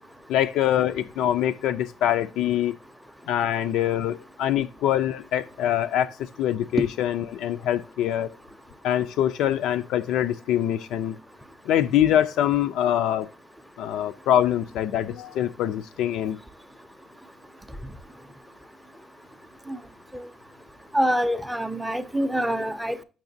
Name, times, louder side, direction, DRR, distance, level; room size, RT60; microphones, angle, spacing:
voice 1, 0.3-2.8 3.3-8.3 8.8-11.2 11.7-13.3 13.8-16.4, left 11 dB, 70° left, 0.3 m, -24 dB
voice 2, 20.9-23.0, equal, 5° right, 0.5 m, -25 dB
7.0 x 5.9 x 2.5 m
cardioid pair, 145°, 0 cm